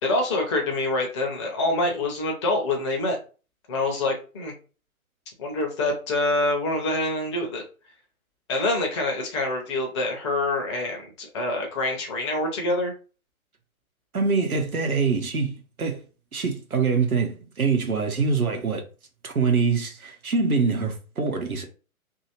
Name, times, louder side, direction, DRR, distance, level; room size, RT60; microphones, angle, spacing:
voice 1, 0.0-3.2 3.7-4.5 5.4-7.6 8.5-12.9, left 2 dB, 20° left, 0.6 m, -26 dB
voice 2, 14.1-16.0 16.3-18.8 19.2-21.6, right 4 dB, 85° right, 0.9 m, -24 dB
2.8 x 2.7 x 2.8 m
figure-of-eight pair, 125°, 43 cm